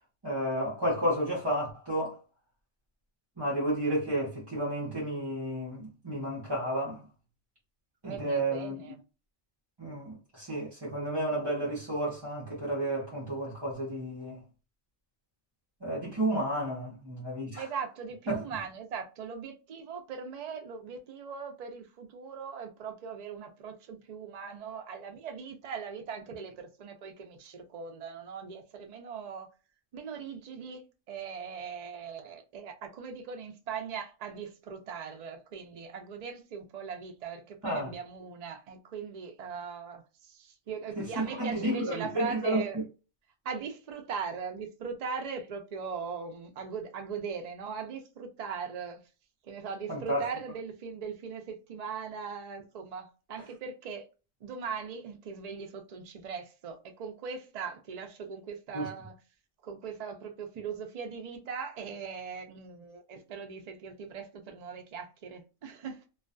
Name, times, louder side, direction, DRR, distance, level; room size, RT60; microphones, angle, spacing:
voice 1, 0.2-2.2 3.4-7.0 8.0-8.8 9.8-14.4 15.8-17.6 18.3-18.4 37.6-37.9 41.0-42.6 49.9-50.3 58.7-58.9, right 1 dB, 25° right, 0.6 m, -31 dB
voice 2, 8.0-9.0 17.6-29.5 29.9-42.8 43.4-49.0 49.4-54.1 54.4-59.1 59.6-66.0, right 6 dB, 85° right, 0.3 m, -40 dB
2.3 x 2.2 x 2.4 m
omnidirectional pair, 1.3 m